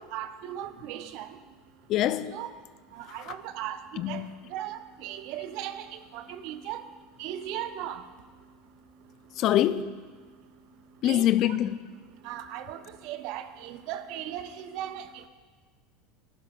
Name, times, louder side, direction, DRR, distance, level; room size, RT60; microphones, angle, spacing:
voice 1, 0.0-1.4 2.3-2.5 2.9-4.2 4.5-6.8 7.2-8.0 11.0-11.6 12.2-15.3, right 11 dB, 60° right, 0.6 m, -37 dB
voice 2, 1.9-2.4 3.1-3.3 4.0-4.3 9.4-10.0 11.0-11.9, left 12 dB, 50° left, 0.4 m, -25 dB
12.0 x 12.0 x 2.4 m
hypercardioid pair, 85°, 0 cm